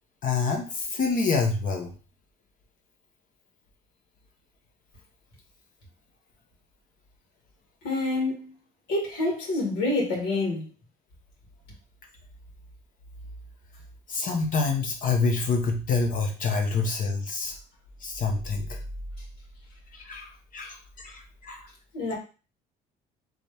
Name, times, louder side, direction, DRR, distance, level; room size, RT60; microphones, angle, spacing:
voice 1, 0.2-1.9 14.1-17.5 18.0-18.8 19.9-21.6, left 4 dB, 50° left, 1.0 m, -27 dB
voice 2, 7.8-8.5 8.9-10.7 21.9-22.1, left 2 dB, 80° left, 2.2 m, -27 dB
4.0 x 3.1 x 3.4 m
cardioid pair, 110°, 17 cm